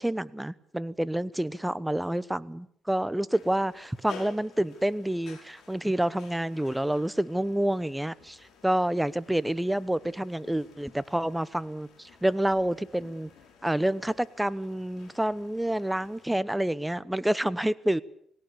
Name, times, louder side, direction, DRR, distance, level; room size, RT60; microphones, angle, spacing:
voice 1, 0.0-8.4 8.6-13.3 13.6-18.0, right 1 dB, 5° right, 17 dB, 0.9 m, -28 dB
sound 1, 3.3-16.4, left 6 dB, 75° left, 5.7 m, -53 dB
20.0 x 18.0 x 8.5 m, 0.65 s
cardioid pair, 90°, 0 cm